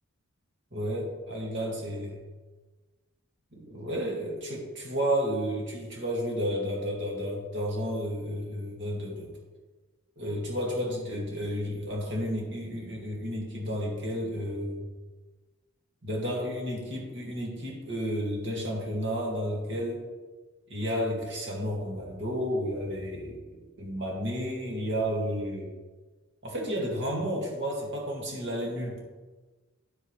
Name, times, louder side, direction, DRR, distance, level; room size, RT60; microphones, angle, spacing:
voice 1, 0.7-2.2 3.5-9.3 10.2-14.9 16.0-20.0 20.7-25.7 26.4-29.0, equal, 55° right, -3 dB, 2.3 m, -32 dB
9.7 x 8.2 x 3.3 m, 1.3 s
head